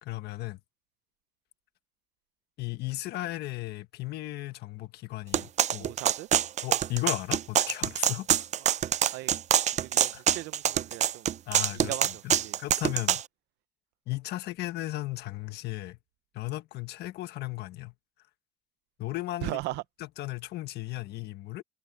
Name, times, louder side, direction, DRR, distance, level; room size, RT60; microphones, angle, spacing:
voice 1, 0.0-0.6 2.6-5.9 6.6-8.4 10.1-10.2 11.5-13.2 14.1-16.0 16.3-17.9 19.0-19.6 20.0-21.6, left 17 dB, 75° left, 1.5 m, -35 dB
sound 1, 5.3-13.2, right 10 dB, 45° right, 0.5 m, -25 dB
voice 2, 5.7-6.3 9.1-9.4 9.8-11.3 11.9-12.1 12.4-12.6 19.4-19.8, right 19 dB, 90° right, 0.7 m, -37 dB
cardioid pair, 110°, 17 cm